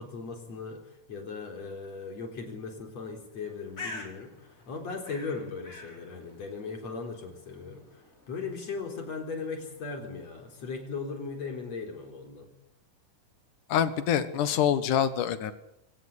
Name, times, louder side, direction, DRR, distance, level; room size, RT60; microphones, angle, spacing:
voice 1, 0.0-12.5, left 4 dB, 55° left, 5 dB, 5.2 m, -38 dB
Bird, 3.3-10.9, left 3 dB, 25° left, 4.8 m, -48 dB
voice 2, 13.7-15.5, left 9 dB, 75° left, 12 dB, 3.0 m, -25 dB
25.5 x 18.0 x 8.5 m, 0.80 s
omnidirectional pair, 3.6 m